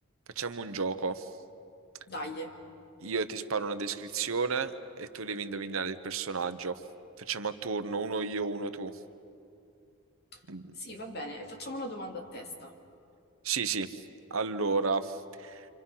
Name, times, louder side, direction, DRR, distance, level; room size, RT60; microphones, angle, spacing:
voice 1, 0.4-1.3 3.0-6.8 7.2-8.9 10.5-10.6 13.4-14.0 14.3-15.7, right 4 dB, 70° right, 10 dB, 0.9 m, -32 dB
voice 2, 2.1-2.5 10.3-10.4 10.7-12.7, equal, 45° left, 2 dB, 2.4 m, -39 dB
29.0 x 26.0 x 5.7 m, 2.5 s
head